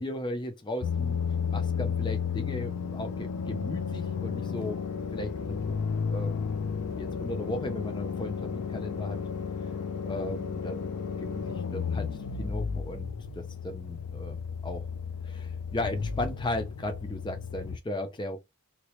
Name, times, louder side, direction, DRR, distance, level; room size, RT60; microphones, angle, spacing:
voice 1, 0.0-4.8 5.1-5.7 6.1-6.3 7.0-9.2 10.0-10.9 11.2-13.1 13.3-14.8 15.2-18.4, left 1 dB, 20° left, 0.5 m, -36 dB
sound 1, 0.8-17.8, left 6 dB, 80° left, 0.4 m, -33 dB
3.0 x 2.9 x 3.0 m
head